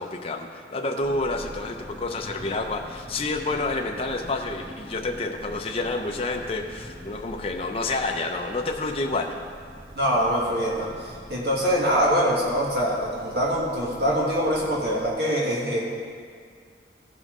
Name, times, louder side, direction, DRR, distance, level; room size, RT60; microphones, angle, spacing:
voice 1, 0.0-9.4, left 2 dB, 35° left, 2 dB, 0.5 m, -29 dB
sound 1, 1.0-15.1, equal, 30° right, 1.5 m, -44 dB
voice 2, 9.9-15.8, equal, 65° right, -5 dB, 1.5 m, -24 dB
16.0 x 5.4 x 3.7 m, 2.1 s
head